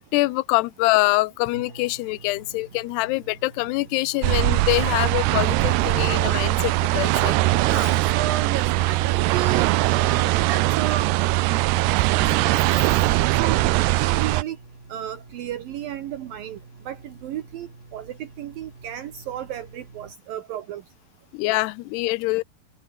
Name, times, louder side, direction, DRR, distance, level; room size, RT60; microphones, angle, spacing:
voice 1, 0.0-7.4 21.3-22.4, left 21 dB, 90° left, 2.7 m, -24 dB
sound 1, 1.5-20.1, right 3 dB, 20° right, 2.8 m, -48 dB
sound 2, 4.2-14.4, right 18 dB, 85° right, 2.9 m, -21 dB
voice 2, 7.6-11.2 12.1-14.6 14.9-16.6 16.9-20.8, right 10 dB, 65° right, 2.8 m, -33 dB
omnidirectional pair, 4.6 m